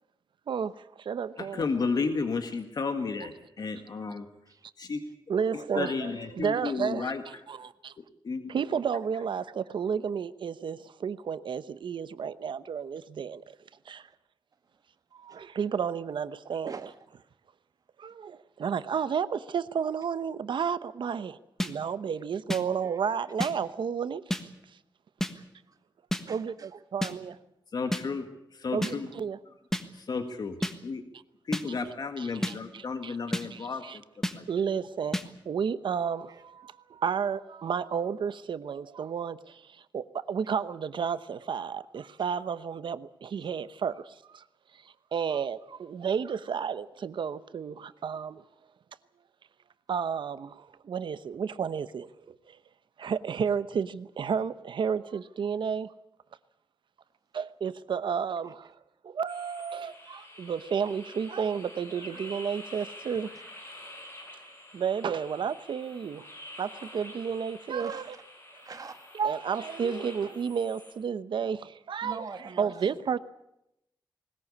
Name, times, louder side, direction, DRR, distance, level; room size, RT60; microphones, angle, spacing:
voice 1, 0.5-1.6 5.3-7.1 7.5-7.9 8.5-13.4 13.9-14.1 15.1-16.9 18.0-24.5 26.3-27.4 28.7-29.4 32.2-33.2 33.5-34.0 34.5-35.2 35.4-44.4 44.8-48.4 49.9-52.6 53.0-55.9 57.3-58.7 59.0-63.3 64.7-66.3 66.6-68.2 69.1-72.2 72.6-73.2, right 7 dB, 90° right, 0.9 m, -32 dB
voice 2, 1.4-4.3 4.8-5.0 5.5-7.2 8.0-8.7 27.7-29.1 29.9-30.6 30.8-31.0 31.5-34.0 34.3-34.4, left 4 dB, 55° left, 1.7 m, -33 dB
sound 1, 21.6-21.7 22.5-22.6 23.4-23.5 24.3-24.4 25.2-25.3 26.1-26.2 27.0-27.1 27.9-28.0 28.8-28.9 29.7-29.8 30.6-30.7 31.5-31.6 32.4-32.6 33.3-33.5 34.2-34.4 35.1-35.3, left 1 dB, 5° left, 1.4 m, -29 dB
voice 3, 25.4-25.8 26.3-26.7 67.8-68.2 68.7-69.0 72.0-73.0, right 4 dB, 50° right, 1.9 m, -43 dB
sound 2, 59.3-70.9, left 1 dB, 30° left, 6.8 m, -48 dB
20.5 x 20.0 x 8.5 m
wide cardioid pair, 160°, 8 cm